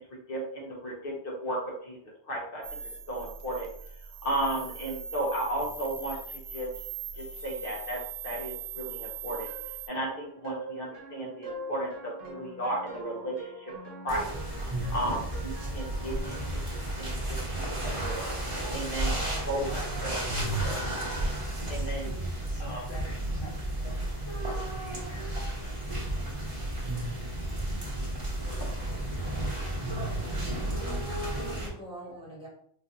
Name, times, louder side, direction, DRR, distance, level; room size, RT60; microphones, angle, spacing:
voice 1, 0.3-2.0 2.3-2.6 3.1-3.7 4.2-6.7 7.4-8.0 8.2-9.5 9.9-13.7 14.0-14.3 14.9-16.4 16.7-17.2 17.5-18.3 18.7-20.2 20.6-20.8 21.7-22.1 22.6-22.8, right 1 dB, 50° left, -3 dB, 1.0 m, -34 dB
sound 1, 2.6-9.9, right 6 dB, 55° right, 0.4 m, -41 dB
sound 2, 9.5-17.1, right 1 dB, 80° right, 1.0 m, -44 dB
sound 3, 14.1-31.7, right 1 dB, 30° right, 1.0 m, -32 dB
voice 2, 19.5-20.6 22.0-25.6, equal, 35° left, -5 dB, 0.4 m, -46 dB
voice 3, 30.6-32.5, equal, 5° right, -6 dB, 1.1 m, -45 dB
4.4 x 2.4 x 2.6 m, 0.65 s
omnidirectional pair, 1.2 m